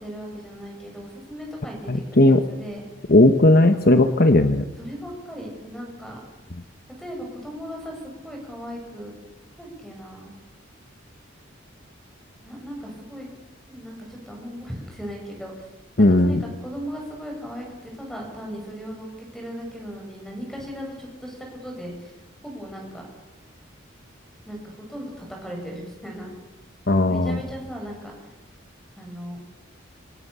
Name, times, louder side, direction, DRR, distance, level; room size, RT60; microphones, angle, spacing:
voice 1, 0.0-2.8 4.8-6.2 7.0-9.1 9.6-10.3 12.4-13.3 13.7-15.7 16.0-21.4 21.6-22.1 22.4-23.1 24.5-26.3 27.0-28.1 29.0-29.4, equal, ahead, 0 dB, 7.4 m, -37 dB
voice 2, 1.9-2.4 3.1-4.6 16.0-16.4 26.9-27.4, left 1 dB, 50° left, 8 dB, 1.2 m, -16 dB
26.5 x 26.0 x 6.9 m, 1.1 s
head